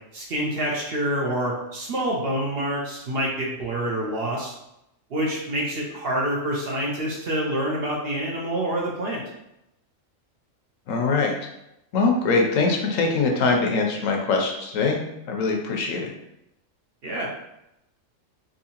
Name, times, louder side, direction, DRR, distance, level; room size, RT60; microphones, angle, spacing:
voice 1, 0.1-4.5 5.1-9.2 17.0-17.3, right 1 dB, 55° right, -3 dB, 0.8 m, -27 dB
voice 2, 10.9-11.3 11.9-15.0 15.3-16.1, left 4 dB, 80° left, 1 dB, 1.0 m, -22 dB
3.6 x 2.7 x 2.8 m, 0.85 s
omnidirectional pair, 1.4 m